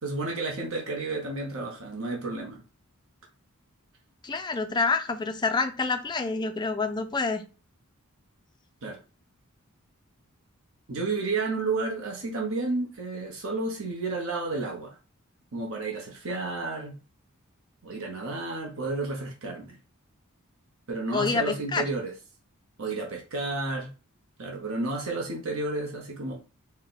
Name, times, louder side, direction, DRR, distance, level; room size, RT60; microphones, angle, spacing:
voice 1, 0.0-2.6 8.8-9.0 10.9-15.0 15.5-17.0 17.8-19.8 20.9-22.1 22.8-23.9 24.4-26.3, right 3 dB, 65° right, 0.9 m, -31 dB
voice 2, 4.2-7.4 21.1-21.8, left 4 dB, 20° left, 0.4 m, -27 dB
4.2 x 2.2 x 3.9 m
head